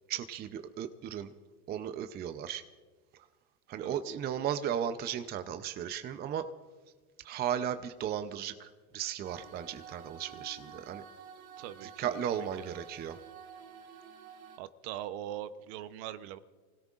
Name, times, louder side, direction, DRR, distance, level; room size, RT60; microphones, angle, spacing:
voice 1, 0.1-1.3 1.7-2.6 3.7-6.5 7.2-11.0 11.8-13.2, right 9 dB, 25° right, 10 dB, 0.6 m, -35 dB
voice 2, 3.8-4.2 11.6-12.2 12.6-12.8 14.6-16.4, right 12 dB, 50° right, 13 dB, 0.9 m, -41 dB
sound 1, 9.2-14.6, right 7 dB, 85° right, 1.4 m, -50 dB
29.5 x 17.0 x 2.5 m, 1.4 s
hypercardioid pair, 120°, 41 cm